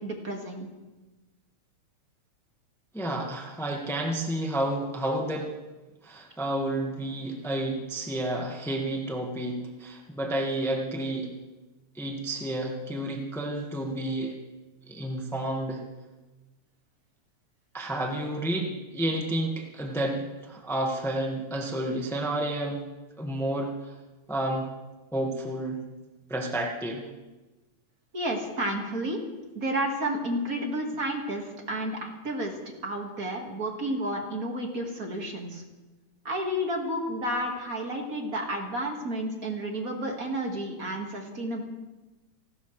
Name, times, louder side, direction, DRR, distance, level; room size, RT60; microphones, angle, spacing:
voice 1, 0.0-0.7 28.1-29.2 29.6-32.6 32.8-35.6 36.2-41.6, right 1 dB, 35° right, 1 dB, 2.0 m, -31 dB
voice 2, 2.9-5.5 6.0-11.3 11.9-14.4 14.8-15.8 17.7-22.8 23.2-23.9 24.3-24.7 25.1-25.8 26.3-27.1, right 1 dB, 5° left, 0 dB, 0.3 m, -30 dB
29.5 x 12.5 x 3.3 m, 1.1 s
omnidirectional pair, 3.4 m